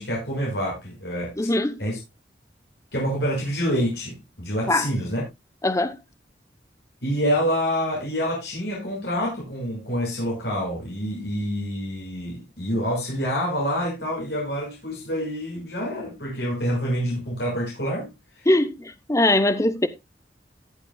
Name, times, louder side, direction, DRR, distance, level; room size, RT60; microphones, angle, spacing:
voice 1, 0.0-1.5 1.8-2.0 2.9-5.2 7.0-18.1, equal, 75° left, 6.0 m, -27 dB
voice 2, 1.4-1.8 4.7-4.9 5.6-6.0 18.5-19.9, left 1 dB, 20° left, 0.8 m, -21 dB
18.0 x 7.5 x 2.3 m
head